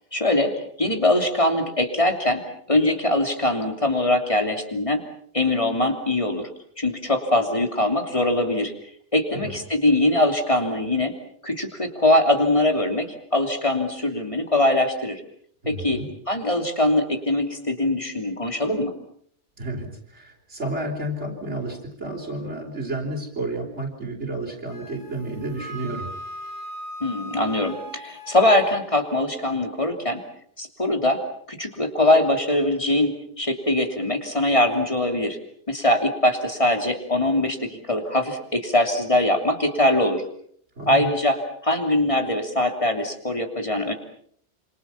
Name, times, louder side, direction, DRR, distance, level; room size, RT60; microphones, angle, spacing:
voice 1, 0.1-0.5 0.8-5.0 5.3-6.5 6.8-8.7 9.1-11.1 11.4-15.2 15.7-16.0 16.3-18.9 27.0-30.2 30.6-31.2 31.5-35.4 35.7-40.2 40.9-41.4 41.6-43.9, left 1 dB, 30° left, 5 dB, 3.1 m, -22 dB
voice 2, 15.6-16.1 19.6-26.1 40.8-41.1, right 1 dB, 80° right, -2 dB, 4.6 m, -31 dB
Wind instrument woodwind instrument, 24.7-28.8, right 1 dB, 75° left, 4.5 m, -38 dB
27.0 x 26.5 x 5.8 m, 0.63 s
omnidirectional pair, 1.2 m